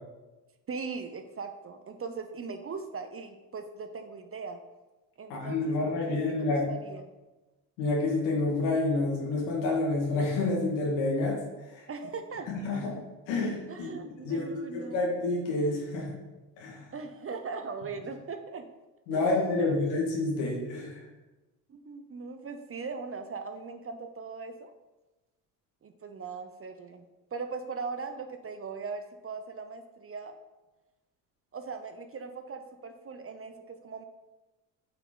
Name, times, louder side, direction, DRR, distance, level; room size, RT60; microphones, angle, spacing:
voice 1, 0.7-4.6 5.2-7.1 11.9-12.5 13.7-15.0 16.9-18.7 19.1-19.3 19.6-19.8 21.7-24.7 25.8-27.0 27.3-30.3 31.5-34.0, right 4 dB, 30° right, 8 dB, 0.9 m, -39 dB
voice 2, 5.3-6.6 7.8-11.4 11.7-11.8 12.5-12.8 13.3-13.9 14.2-16.1 16.6-16.8 19.1-21.0, left 2 dB, 75° left, -3 dB, 2.4 m, -28 dB
8.4 x 6.0 x 4.0 m, 1.1 s
hypercardioid pair, 65°, 41 cm